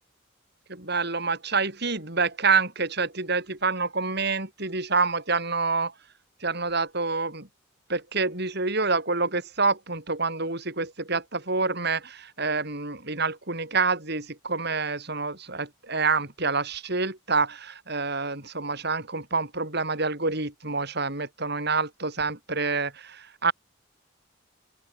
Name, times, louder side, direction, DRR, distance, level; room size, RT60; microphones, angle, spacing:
voice 1, 0.7-5.9 6.4-7.5 7.9-23.5, right 4 dB, 55° right, 6.4 m, -27 dB
open air
head